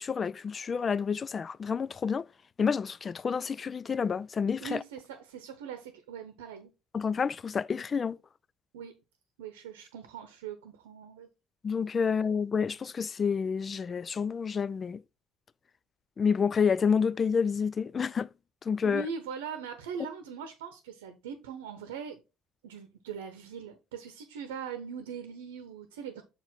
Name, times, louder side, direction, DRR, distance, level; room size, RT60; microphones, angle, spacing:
voice 1, 0.0-2.3 2.6-4.8 6.9-8.2 11.6-15.0 16.2-18.3 18.7-19.1, left 6 dB, 35° left, 0.3 m, -29 dB
voice 2, 4.6-6.7 8.7-8.9 9.4-11.3 18.8-22.2 22.6-26.2, right 6 dB, 75° right, 0.8 m, -41 dB
6.6 x 4.8 x 3.5 m
hypercardioid pair, 55°, 0 cm